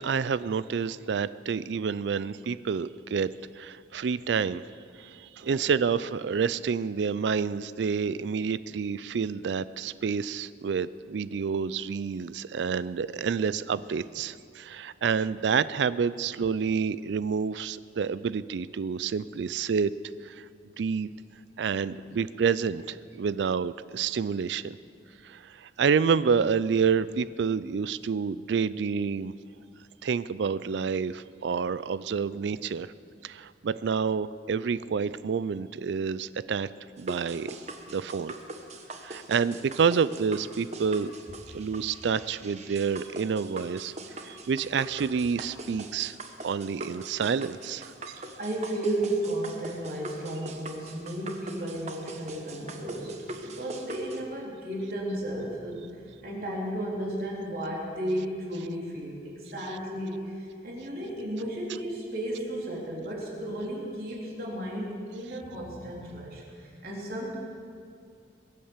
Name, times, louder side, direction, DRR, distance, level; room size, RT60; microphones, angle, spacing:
voice 1, 0.0-4.6 5.0-19.9 20.2-20.5 20.8-21.1 21.6-24.8 25.2-29.3 30.0-32.9 33.2-36.7 37.0-37.5 37.9-38.3 39.0-41.1 41.5-46.2 46.4-48.2, right 6 dB, 70° right, 17 dB, 0.4 m, -28 dB
voice 2, 5.4-5.7 48.4-67.4, right 1 dB, 55° right, -3 dB, 3.9 m, -34 dB
sound 1, 37.0-54.2, right 2 dB, 40° right, 1.2 m, -42 dB
22.0 x 8.6 x 7.3 m, 2.3 s
head